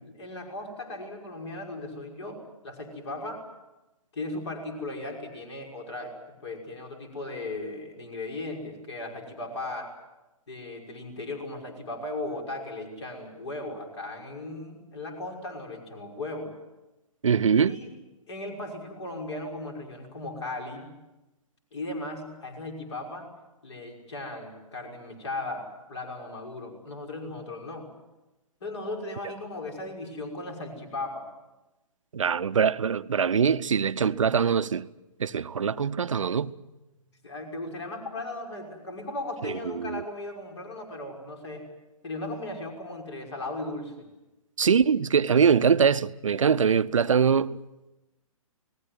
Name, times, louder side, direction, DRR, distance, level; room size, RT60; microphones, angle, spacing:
voice 1, 0.2-3.5 4.1-9.9 10.5-16.5 17.5-17.9 18.3-21.0 21.7-23.3 23.6-27.9 28.6-31.3 37.2-41.7 42.0-44.1, left 2 dB, 50° left, 5.9 m, -37 dB
voice 2, 17.2-17.8 32.1-34.9 35.2-36.5 39.4-40.0 44.6-47.6, right 6 dB, 60° right, 0.8 m, -23 dB
29.5 x 19.0 x 7.7 m
figure-of-eight pair, 125°, 18 cm